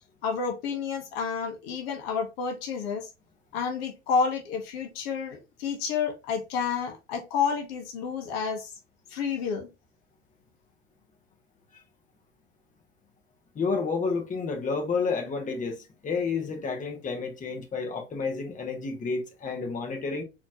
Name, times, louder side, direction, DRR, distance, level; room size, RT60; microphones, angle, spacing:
voice 1, 0.2-3.1 3.5-8.7 9.1-9.7, left 6 dB, 60° left, 1.1 m, -30 dB
voice 2, 13.5-20.2, left 4 dB, 25° left, 1.2 m, -30 dB
4.3 x 3.0 x 2.8 m
hypercardioid pair, 85°, 34 cm